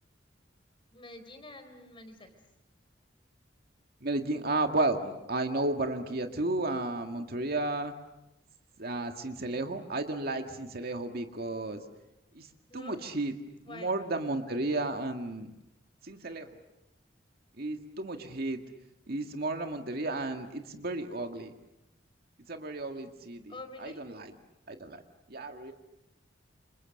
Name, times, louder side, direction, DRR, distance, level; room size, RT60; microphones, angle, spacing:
voice 1, 0.9-2.3 12.7-13.0 13.7-13.9 23.5-24.0, left 2 dB, 30° left, 7 dB, 4.2 m, -47 dB
voice 2, 4.0-7.9 8.8-11.8 12.3-12.5 12.7-13.3 13.7-15.5 16.0-16.6 17.6-18.6 19.1-21.5 22.5-23.5 23.8-24.3 24.7-25.0 25.3-25.7, right 2 dB, 55° right, 5 dB, 2.0 m, -33 dB
29.5 x 27.0 x 6.6 m, 0.92 s
head